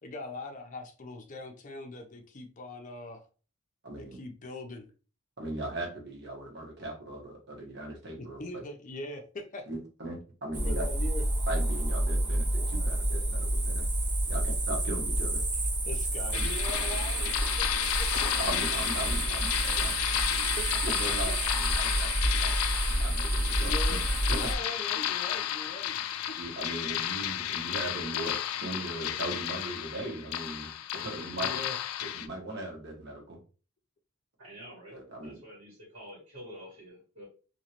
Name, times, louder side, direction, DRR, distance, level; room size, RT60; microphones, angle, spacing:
voice 1, 0.0-3.3 4.0-4.9 8.2-9.7 10.6-11.2 15.9-18.3 20.4-20.6 21.3-21.4 23.6-24.0 24.3-26.0 26.3-26.4 31.3-31.8, left 1 dB, 35° left, 4 dB, 0.5 m, -41 dB
voice 2, 3.8-4.2 5.4-8.4 9.7-10.9 11.5-13.9 14.3-15.4 18.4-19.9 20.8-22.1 22.4-24.0 24.3-24.4 26.4-31.6 32.0-33.4 34.9-35.4, right 1 dB, 50° right, 0 dB, 1.1 m, -38 dB
sound 1, 10.5-24.6, right 1 dB, 20° right, 0.5 m, -29 dB
sound 2, 16.3-32.3, left 11 dB, 85° left, 0.3 m, -32 dB
voice 3, 34.4-37.2, equal, 75° right, -4 dB, 1.7 m, -48 dB
3.0 x 2.9 x 2.8 m, 0.37 s
head